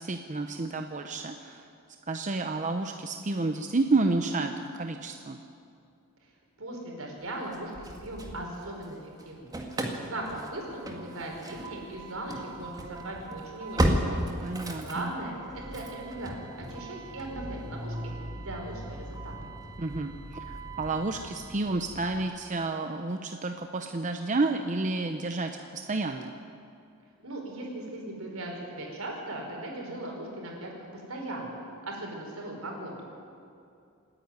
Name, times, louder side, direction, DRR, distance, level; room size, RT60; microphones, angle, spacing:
voice 1, 0.0-1.6 2.1-5.4 14.4-15.1 19.8-26.3, right 3 dB, 35° right, 6 dB, 0.8 m, -30 dB
voice 2, 6.6-14.2 14.6-17.9 18.3-19.3 27.2-31.6 31.8-33.1, right 1 dB, 75° right, 0 dB, 5.1 m, -38 dB
Engine starting / Slam, 7.5-8.9 9.2-22.2, right 1 dB, 20° right, 1.8 m, -35 dB
27.5 x 10.0 x 9.5 m, 2.5 s
head